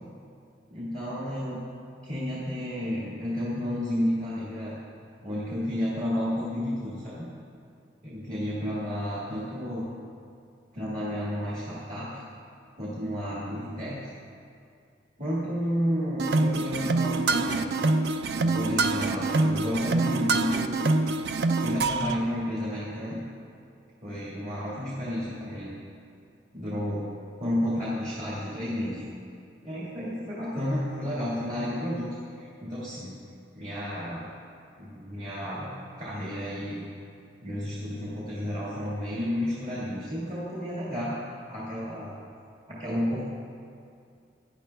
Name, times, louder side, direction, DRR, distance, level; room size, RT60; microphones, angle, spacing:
voice 1, 0.7-1.6 2.0-4.8 5.2-7.3 8.0-9.9 10.7-12.2 12.8-14.0 15.2-18.0 18.4-20.9 21.6-23.2 24.0-25.7 26.5-27.0 27.4-29.0 29.6-32.1 32.4-33.2 33.5-34.3 34.8-35.7 36.0-36.8 37.4-42.1 42.7-43.2, equal, 40° right, -9 dB, 1.8 m, -31 dB
sound 1, 16.2-22.2, right 3 dB, 60° right, 0.4 m, -25 dB
15.5 x 10.5 x 2.3 m, 2.4 s
head